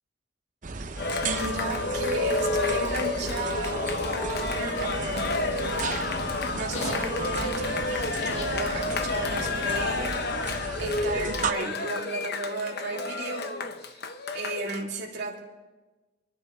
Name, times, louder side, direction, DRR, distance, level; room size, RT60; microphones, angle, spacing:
sound 1, 0.6-11.5, right 4 dB, 40° right, 0.7 m, -35 dB
Cheering, 1.0-14.8, left 3 dB, 55° left, 0.9 m, -30 dB
voice 1, 1.2-6.1 6.5-13.5 13.9-14.1 14.3-15.4, right 3 dB, 60° right, -4 dB, 2.9 m, -34 dB
sound 2, 4.9-10.0, left 2 dB, 75° left, 2.0 m, -39 dB
29.0 x 11.0 x 3.3 m, 1.2 s
head